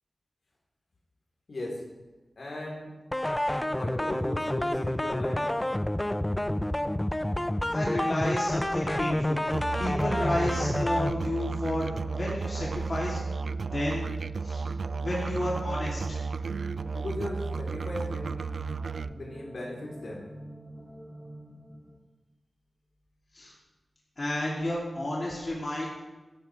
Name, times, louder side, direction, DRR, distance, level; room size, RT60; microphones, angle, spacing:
voice 1, 1.5-1.8 2.4-2.9 3.6-5.4 16.9-18.7 19.0-20.3, left 1 dB, 65° left, -3 dB, 4.0 m, -37 dB
sound 1, 3.1-11.1, left 1 dB, 15° left, 0.4 m, -29 dB
sound 2, 3.5-22.0, right 1 dB, 10° right, 2.8 m, -45 dB
voice 2, 7.7-9.5 9.8-13.2 13.6-14.1 14.4-14.6 15.0-16.2 23.3-23.5 24.2-25.9, left 1 dB, 40° left, -6 dB, 3.1 m, -31 dB
Musical instrument, 9.5-19.1, right 4 dB, 75° right, 0.3 m, -33 dB
15.5 x 12.0 x 3.5 m, 1.2 s
wide cardioid pair, 110°, 0 cm